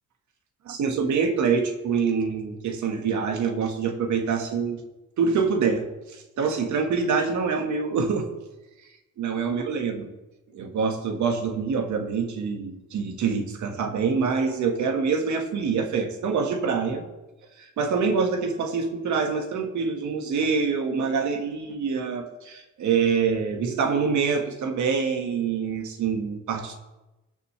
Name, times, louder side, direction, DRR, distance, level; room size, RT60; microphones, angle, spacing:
voice 1, 0.6-4.8 5.2-8.3 9.2-10.0 10.5-17.0 17.6-26.8, right 5 dB, 70° right, 5 dB, 1.7 m, -25 dB
19.0 x 6.6 x 3.2 m, 1.0 s
cardioid pair, 90°, 30 cm